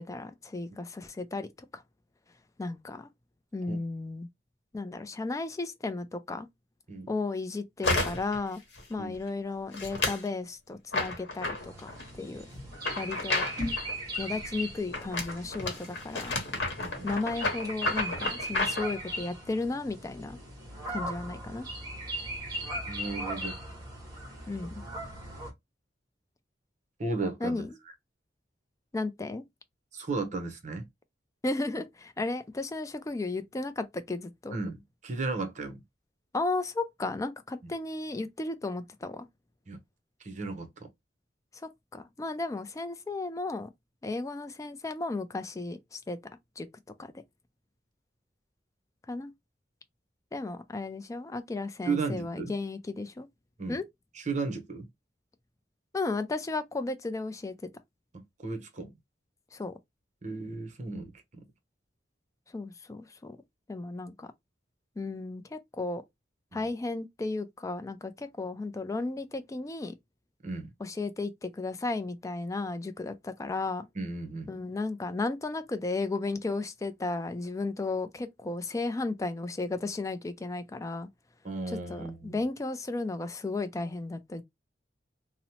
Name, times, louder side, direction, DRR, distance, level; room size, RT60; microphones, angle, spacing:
voice 1, 0.0-1.8 2.6-3.1 3.5-4.3 4.7-6.5 7.1-8.6 8.9-12.5 13.0-13.5 14.2-16.4 17.0-20.4 20.9-21.7 24.5-24.7 27.4-27.8 28.9-29.4 31.4-34.6 36.3-39.3 41.6-43.7 44.0-46.2 46.6-46.7 47.0-47.1 49.1-49.3 50.3-53.3 53.7-53.8 55.9-57.5 59.5-59.7 62.5-63.4 63.7-64.3 65.0-66.0 66.5-69.9 70.8-73.9 74.5-81.1 81.7-84.4, left 3 dB, 20° left, 0.3 m, -34 dB
sound 1, 7.8-8.4 8.8-9.2 9.7-10.3 10.9-12.1 12.7-14.0 14.9-18.9, left 2 dB, 80° left, 0.9 m, -31 dB
sound 2, 11.6-25.5, equal, 20° right, 1.3 m, -38 dB
voice 2, 16.8-17.1 22.9-23.6 27.0-27.6 29.9-30.9 34.5-35.8 39.7-39.8 40.2-40.9 51.8-52.5 53.6-53.8 54.2-54.9 58.1-58.9 60.2-61.1 66.5-66.6 70.4-70.7 74.0-74.5 81.4-82.4, right 3 dB, 45° right, 0.7 m, -34 dB
2.8 x 2.0 x 2.8 m
head